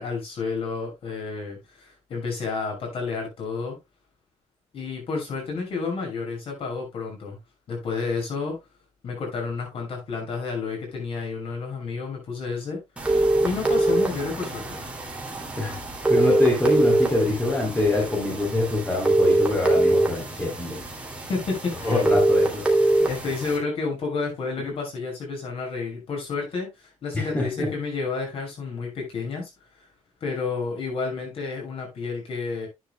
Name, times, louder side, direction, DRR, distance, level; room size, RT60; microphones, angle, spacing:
voice 1, 0.0-3.8 4.7-7.4 7.7-8.6 9.0-12.8 13.1-14.8 21.1-22.0 23.0-29.5 30.2-32.7, left 4 dB, 55° left, 6.1 m, -30 dB
sound 1, 13.0-23.6, right 1 dB, 10° right, 2.6 m, -23 dB
voice 2, 16.1-20.8 21.8-22.6 27.1-27.7, left 2 dB, 15° left, 3.4 m, -24 dB
11.0 x 9.1 x 2.2 m
cardioid pair, 160°, 11 cm